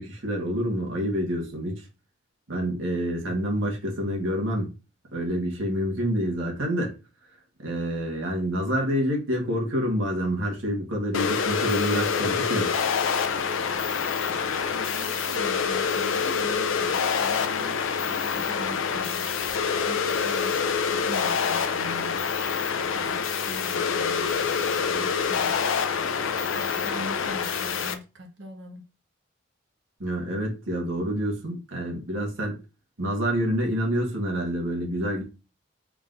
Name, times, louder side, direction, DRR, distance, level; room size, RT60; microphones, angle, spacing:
voice 1, 0.0-1.9 2.5-4.7 5.1-6.9 7.6-12.7 30.0-32.6 33.0-35.2, equal, 85° right, 1.4 m, -27 dB
sound 1, 11.1-27.9, left 6 dB, 80° left, 0.5 m, -26 dB
voice 2, 14.7-22.3 22.7-25.7 26.0-28.9, equal, 65° right, 0.9 m, -43 dB
3.7 x 3.7 x 2.5 m
head